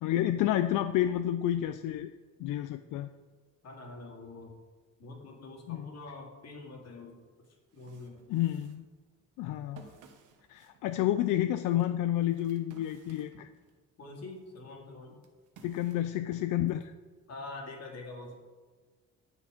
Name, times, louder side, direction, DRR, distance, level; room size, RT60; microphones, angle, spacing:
voice 1, 0.0-2.1 2.4-3.1 5.7-5.9 8.3-8.8 9.4-9.8 10.5-13.5 15.6-16.9, left 12 dB, 90° left, 10 dB, 0.5 m, -30 dB
voice 2, 3.6-4.6 5.0-7.2 7.7-8.2 14.0-15.2 17.3-18.3, left 2 dB, 55° left, 1 dB, 2.4 m, -45 dB
sound 1, 7.4-13.8 14.3-16.9, right 5 dB, 90° right, 1.3 m, -59 dB
9.8 x 6.7 x 5.0 m, 1.3 s
cardioid pair, 90°, 30 cm